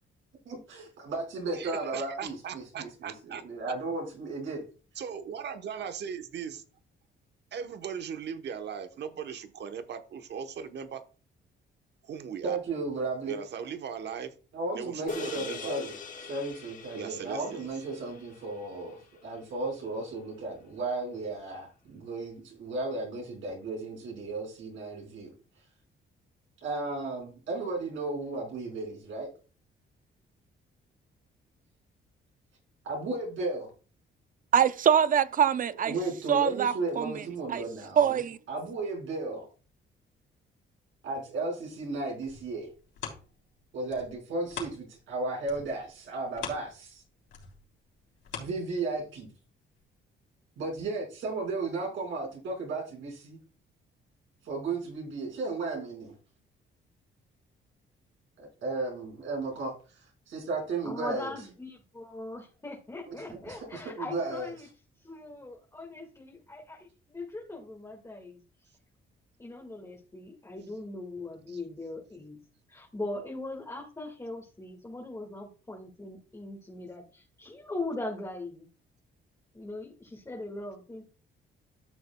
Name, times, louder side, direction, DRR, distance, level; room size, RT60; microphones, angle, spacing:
voice 1, 0.4-4.6 12.4-13.4 14.5-15.9 16.2-25.3 26.6-29.3 32.8-33.7 35.8-38.2 38.5-39.5 41.0-42.7 43.7-47.0 48.4-49.3 50.6-53.4 54.4-56.1 58.4-61.3 63.5-64.5, right 3 dB, 75° right, 5.0 m, -34 dB
voice 2, 1.5-3.4 5.0-6.6 7.5-11.0 12.0-12.6 13.3-14.3 14.7-15.8 16.9-17.7 71.5-71.6, right 7 dB, 60° right, 1.0 m, -38 dB
sound 1, 15.1-19.7, left 5 dB, 40° left, 1.5 m, -43 dB
voice 3, 34.5-35.9 36.3-37.2 37.5-37.6 38.0-38.4, right 8 dB, 45° right, 0.5 m, -24 dB
sound 2, 42.1-45.1 45.4-49.2 49.7-49.8, left 7 dB, 75° left, 3.5 m, -44 dB
voice 4, 60.8-64.7 65.0-68.7 69.4-72.4 72.7-78.7 79.5-81.0, left 2 dB, 15° left, 1.8 m, -40 dB
13.0 x 6.8 x 2.2 m
cardioid pair, 90°, 20 cm